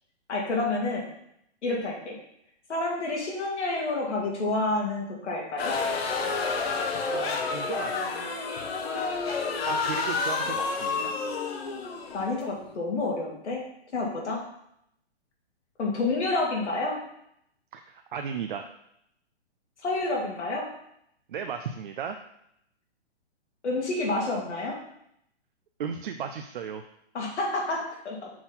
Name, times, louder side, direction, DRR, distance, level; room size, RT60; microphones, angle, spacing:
voice 1, 0.3-1.1 1.6-2.2 2.7-5.8 12.1-13.6 13.9-14.4 15.8-17.0 19.8-20.7 23.6-24.8 27.1-28.3, left 2 dB, 80° left, -2 dB, 2.4 m, -29 dB
sound 1, 5.6-12.7, left 4 dB, 60° left, 1.1 m, -29 dB
voice 2, 7.1-8.4 9.7-11.1 17.7-18.7 21.3-22.2 25.8-26.8, right 7 dB, 50° right, 6 dB, 0.5 m, -35 dB
6.0 x 4.1 x 4.0 m, 0.75 s
hypercardioid pair, 155°, 34 cm